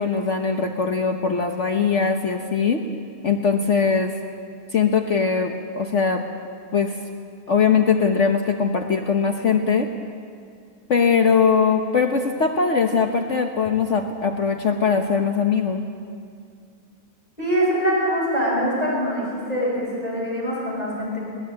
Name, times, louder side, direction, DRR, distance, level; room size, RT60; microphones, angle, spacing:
voice 1, 0.0-2.8 3.2-4.1 4.7-6.2 6.7-6.9 7.5-9.9 10.9-15.8, left 5 dB, 55° left, 4 dB, 1.3 m, -21 dB
voice 2, 17.4-21.2, equal, 25° left, -5 dB, 6.2 m, -23 dB
21.0 x 19.5 x 8.6 m, 2.2 s
omnidirectional pair, 1.6 m